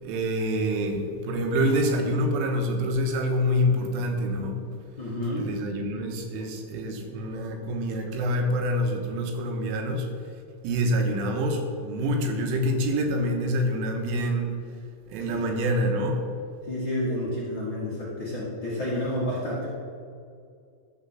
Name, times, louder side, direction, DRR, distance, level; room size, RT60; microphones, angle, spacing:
voice 1, 0.0-4.6 5.3-10.1 10.6-14.5 15.1-16.2, equal, 85° right, 3 dB, 3.7 m, -26 dB
voice 2, 5.0-5.5 7.9-8.0 15.3-15.4 16.6-19.7, left 1 dB, 55° left, -9 dB, 1.2 m, -30 dB
13.0 x 4.5 x 7.2 m, 2.3 s
omnidirectional pair, 5.5 m